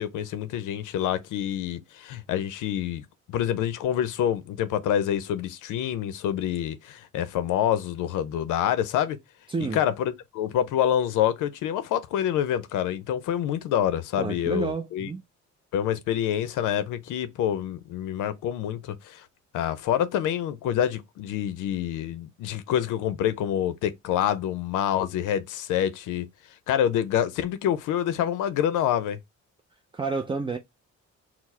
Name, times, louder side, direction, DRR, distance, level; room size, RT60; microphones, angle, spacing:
voice 1, 0.0-9.2 9.7-15.1 15.7-19.3 19.5-26.3 26.7-29.2, left 10 dB, 85° left, 0.5 m, -27 dB
voice 2, 9.5-9.8 14.2-15.2 29.9-30.6, right 4 dB, 15° right, 0.4 m, -29 dB
4.5 x 2.0 x 4.2 m
cardioid pair, 90°, 30 cm